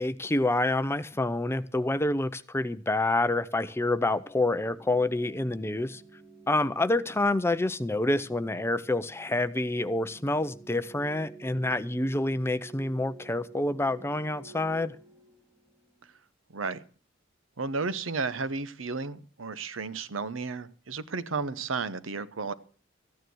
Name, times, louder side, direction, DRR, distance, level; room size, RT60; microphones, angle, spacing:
voice 1, 0.0-6.0 6.5-15.0, left 2 dB, 15° left, 0.6 m, -27 dB
sound 1, 3.3-16.0, right 3 dB, 5° right, 2.6 m, -52 dB
voice 2, 16.5-16.8 17.6-22.5, right 4 dB, 85° right, 0.9 m, -33 dB
14.5 x 9.4 x 6.2 m
head